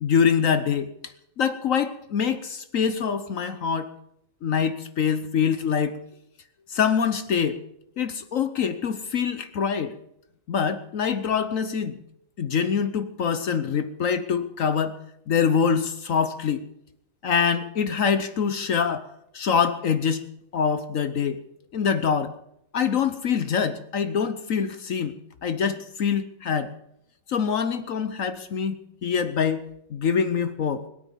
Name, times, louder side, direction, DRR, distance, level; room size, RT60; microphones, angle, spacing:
voice 1, 0.0-0.9 1.4-3.9 4.4-6.0 6.7-7.6 8.0-10.0 10.5-12.0 12.4-15.0 15.3-16.6 17.2-19.1 19.3-20.2 20.5-21.4 21.7-22.3 22.7-25.1 25.4-26.7 27.3-29.6 29.9-30.8, left 6 dB, 60° left, 11 dB, 0.9 m, -24 dB
21.5 x 9.1 x 7.1 m, 0.78 s
omnidirectional pair, 2.2 m